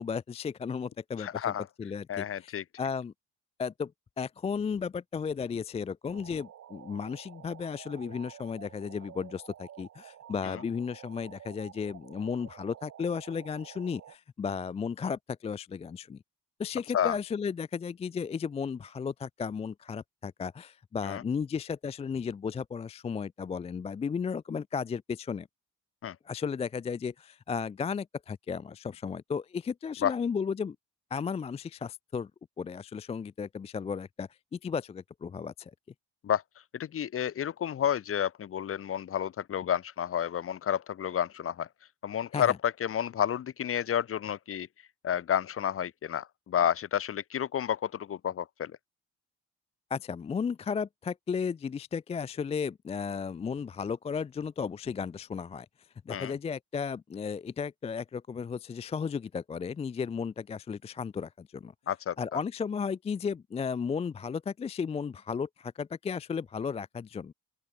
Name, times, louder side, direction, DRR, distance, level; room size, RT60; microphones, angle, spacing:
voice 1, 0.0-1.5 1.8-3.1 3.6-16.2 16.6-25.5 26.3-30.8 31.1-32.3 32.6-35.7 42.3-42.6 49.9-55.7 56.1-61.7 62.2-67.3, left 6 dB, 20° left, 0.3 m, -34 dB
voice 2, 1.2-1.7 2.1-2.6 10.4-10.6 16.9-17.2 21.0-21.2 26.0-26.2 30.0-30.1 36.2-36.4 36.7-41.7 42.0-44.7 45.0-48.7 56.1-56.4 61.9-62.4, left 9 dB, 45° left, 0.9 m, -30 dB
sound 1, 6.1-14.2, right 10 dB, 55° right, 1.1 m, -50 dB
open air
cardioid pair, 90°, 30 cm